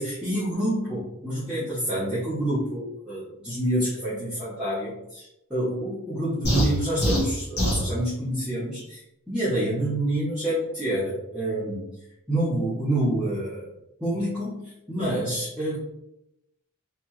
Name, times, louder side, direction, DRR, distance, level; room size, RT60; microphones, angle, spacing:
voice 1, 0.0-5.2 5.5-9.0 9.3-11.9 12.3-13.7 14.0-15.9, right 1 dB, 5° right, -13 dB, 1.1 m, -27 dB
sound 1, 6.4-7.9, equal, 45° left, 1.3 m, -24 dB
3.4 x 2.9 x 3.0 m, 0.86 s
head